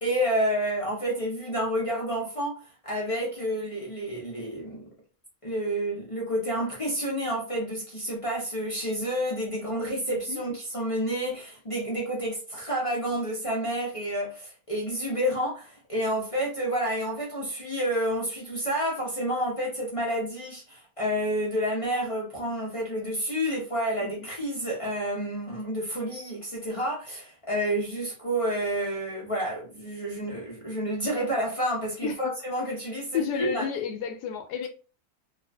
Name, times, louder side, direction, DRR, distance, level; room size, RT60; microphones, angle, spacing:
voice 1, 0.0-4.8 5.4-33.7, equal, 30° left, 0.6 m, -29 dB
voice 2, 10.1-10.4 24.0-24.1 32.0-32.3 33.1-34.7, left 7 dB, 85° left, 1.2 m, -31 dB
3.2 x 2.4 x 2.2 m
omnidirectional pair, 1.7 m